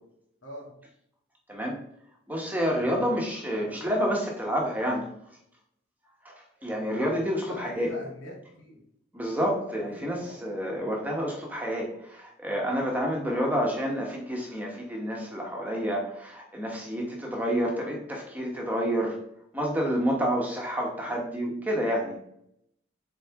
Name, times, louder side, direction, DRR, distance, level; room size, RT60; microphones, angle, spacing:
voice 1, 0.4-0.8 2.6-3.2 3.5-3.9 7.5-8.8 9.9-10.4 21.1-21.2, equal, 85° left, -3 dB, 2.6 m, -43 dB
voice 2, 2.3-5.1 6.2-7.9 9.1-19.2 19.5-22.2, equal, 10° right, -1 dB, 1.2 m, -29 dB
7.6 x 4.7 x 3.6 m, 0.73 s
head